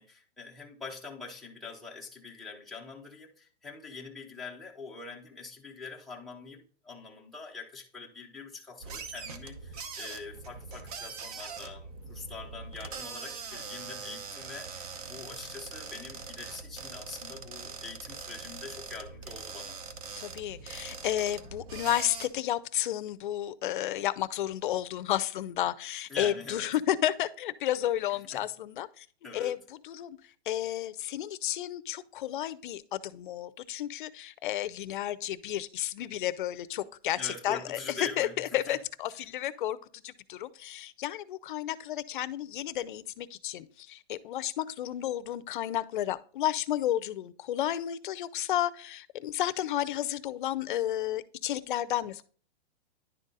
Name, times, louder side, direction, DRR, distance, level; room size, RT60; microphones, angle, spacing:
voice 1, 0.0-19.8 26.1-26.7 28.1-28.4 29.2-29.6 37.2-38.8, left 4 dB, ahead, 0.5 m, -44 dB
sound 1, 8.8-22.3, right 5 dB, 35° right, 0.8 m, -42 dB
voice 2, 20.2-29.1 29.3-29.6 29.8-30.2 30.5-37.8 38.2-52.2, left 12 dB, 50° left, 0.6 m, -32 dB
10.5 x 4.0 x 3.8 m
hypercardioid pair, 165°, 33 cm